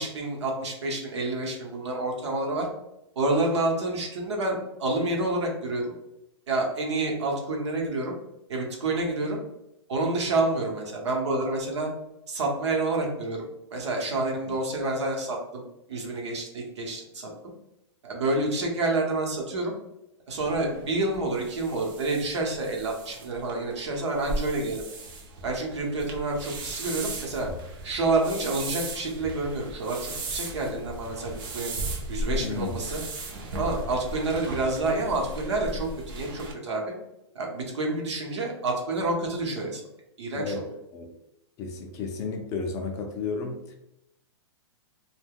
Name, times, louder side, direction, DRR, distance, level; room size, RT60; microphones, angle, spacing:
voice 1, 0.0-2.7 3.2-5.9 6.5-8.1 8.5-9.4 9.9-11.9 12.3-13.4 13.7-17.3 18.0-19.7 20.3-24.8 25.4-27.5 27.8-31.7 32.1-33.0 33.6-35.9 36.1-36.9 37.3-39.8 40.2-40.5, right 2 dB, 75° right, 0 dB, 0.9 m, -28 dB
sound 1, 20.4-36.5, right 2 dB, 50° right, 0.6 m, -37 dB
voice 2, 32.3-32.8 40.3-41.1 41.6-43.7, left 4 dB, 20° left, 3 dB, 0.3 m, -33 dB
2.2 x 2.2 x 3.4 m, 0.88 s
hypercardioid pair, 150°, 15 cm